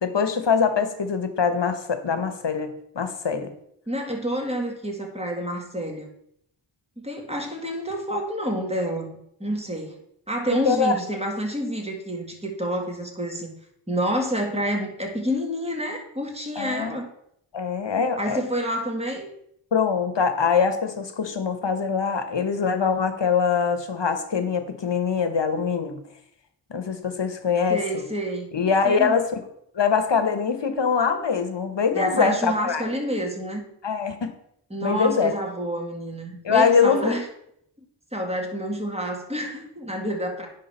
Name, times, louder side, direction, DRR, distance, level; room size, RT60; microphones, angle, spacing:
voice 1, 0.0-3.5 10.5-10.9 16.6-17.0 17.5-18.4 19.7-26.0 26.7-28.0 28.5-29.4 29.7-32.8 33.8-34.3 34.8-35.3 36.4-37.2, left 6 dB, 60° left, 9 dB, 1.1 m, -23 dB
voice 2, 3.9-6.1 7.0-9.9 10.3-13.5 13.9-17.1 18.2-19.3 27.7-28.5 28.8-29.2 31.9-33.6 34.7-37.2 38.1-40.5, equal, 10° right, 1 dB, 1.7 m, -28 dB
10.0 x 3.7 x 5.5 m, 0.75 s
wide cardioid pair, 65°, 49 cm